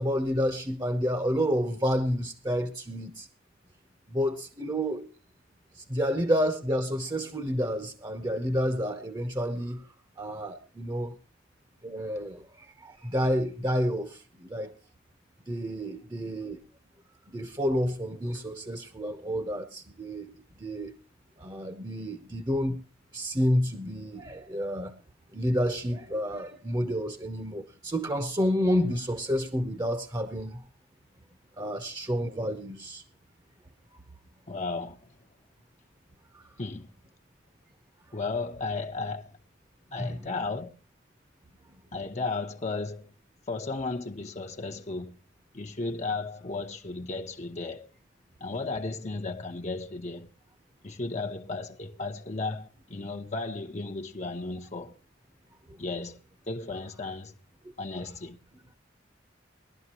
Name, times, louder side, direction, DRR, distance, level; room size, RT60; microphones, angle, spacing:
voice 1, 0.0-3.3 4.1-5.1 5.7-9.8 10.2-11.2 11.8-14.7 15.5-16.6 17.3-21.0 21.4-22.8 23.1-24.9 25.3-30.6 31.6-33.0 36.3-36.4 40.0-40.2 55.7-55.8, equal, 20° right, 0.9 m, -29 dB
voice 2, 34.5-35.0 36.6-36.9 38.1-39.3 39.9-40.7 41.9-43.1 43.5-45.1 45.5-47.9 48.4-50.3 50.8-54.9 55.8-56.2 56.5-57.3 57.8-58.4, left 3 dB, 40° left, 0.9 m, -34 dB
20.5 x 12.0 x 3.0 m
head